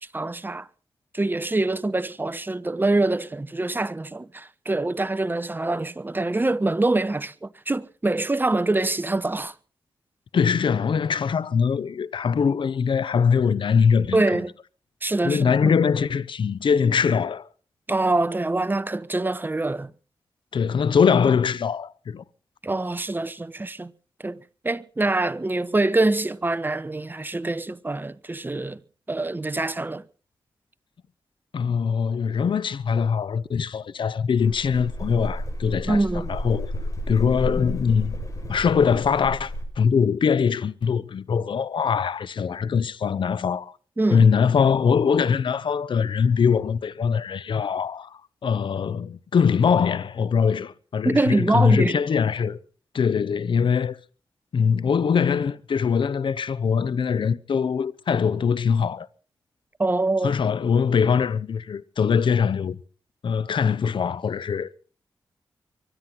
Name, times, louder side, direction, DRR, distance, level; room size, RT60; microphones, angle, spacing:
voice 1, 0.1-0.7 1.1-9.5 14.1-14.5 15.0-15.7 17.9-19.9 22.6-23.9 24.2-24.4 24.6-28.8 29.1-30.0 35.9-36.3 44.0-44.3 51.0-52.0 59.8-60.3, right 2 dB, 20° right, 1.0 m, -24 dB
voice 2, 10.3-14.4 15.2-17.5 20.5-22.2 31.5-36.0 36.3-36.7 37.1-38.2 38.5-43.7 44.1-52.6 52.9-54.0 54.5-59.1 60.2-62.8 63.2-64.8, left 6 dB, 65° left, 0.8 m, -22 dB
sound 1, 34.4-39.6, left 1 dB, 40° left, 6.3 m, -32 dB
24.0 x 9.5 x 5.9 m
cardioid pair, 60°, 9 cm